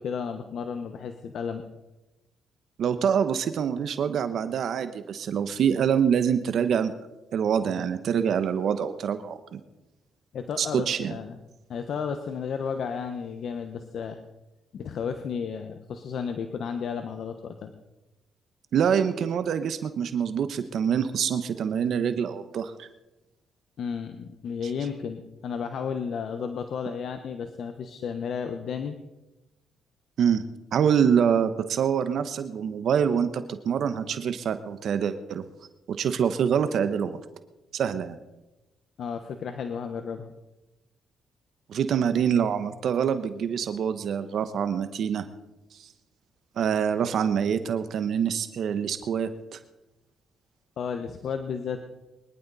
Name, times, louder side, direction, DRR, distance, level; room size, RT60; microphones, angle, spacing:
voice 1, 0.0-1.6 10.3-11.4 11.7-14.2 14.7-17.7 23.8-29.0 39.0-40.3 50.8-51.8, left 6 dB, 65° left, 7 dB, 1.1 m, -33 dB
voice 2, 2.8-6.9 7.3-9.6 10.6-11.2 18.7-22.9 30.2-30.4 30.7-35.4 35.9-37.2 37.7-38.2 41.7-45.3 45.7-45.9 46.6-49.6, right 7 dB, 65° right, 10 dB, 1.0 m, -25 dB
23.0 x 11.5 x 4.1 m, 1.0 s
cardioid pair, 90°, 0 cm